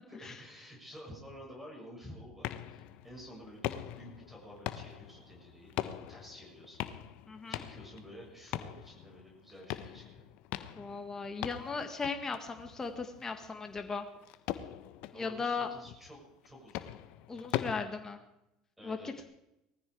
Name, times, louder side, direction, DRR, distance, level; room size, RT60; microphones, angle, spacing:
voice 1, 0.1-5.7 6.1-6.9 7.5-10.3 15.1-16.9 18.8-19.2, equal, 5° right, 0 dB, 6.9 m, -51 dB
sound 1, 2.4-17.8, left 13 dB, 60° left, 1.1 m, -42 dB
voice 2, 7.3-7.6 10.8-14.1 15.1-15.7 17.3-18.2 18.8-19.2, left 4 dB, 20° left, 5 dB, 1.9 m, -37 dB
20.0 x 14.5 x 4.9 m, 0.88 s
hypercardioid pair, 75°, 2 cm